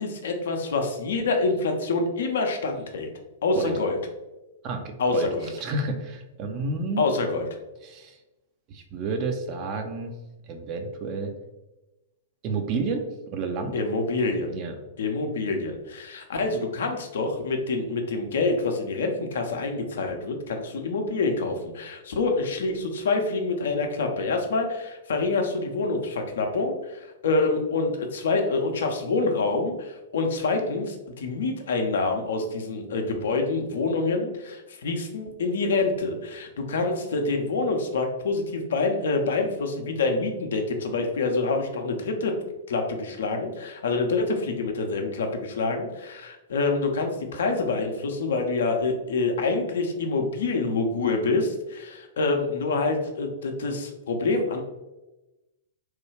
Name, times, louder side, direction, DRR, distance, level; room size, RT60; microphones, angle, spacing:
voice 1, 0.0-3.1 3.4-4.0 5.0-5.5 7.0-7.5 13.7-14.5 15.0-42.3 42.7-54.6, left 3 dB, 65° left, 4 dB, 0.5 m, -26 dB
voice 2, 4.6-7.0 7.8-8.2 8.7-10.2 10.5-11.3 12.4-13.7 14.5-14.8, right 3 dB, 40° right, 5 dB, 0.5 m, -30 dB
3.1 x 2.2 x 3.2 m, 1.0 s
figure-of-eight pair, 105°, 0 cm